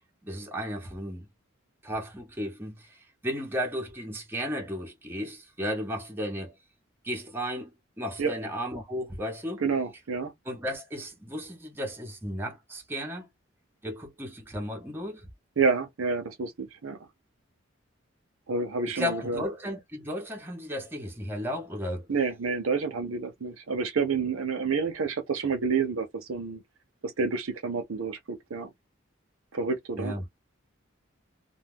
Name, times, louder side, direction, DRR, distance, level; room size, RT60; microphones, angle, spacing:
voice 1, 0.2-1.3 1.8-6.6 7.0-7.7 8.0-9.6 10.5-13.3 13.8-15.3 18.8-22.1 30.0-30.2, equal, 10° right, 0.7 m, -34 dB
voice 2, 9.6-10.3 15.6-17.0 18.5-19.4 22.1-26.6 27.0-28.7 29.5-30.2, right 4 dB, 85° right, 0.7 m, -29 dB
2.2 x 2.2 x 3.4 m
head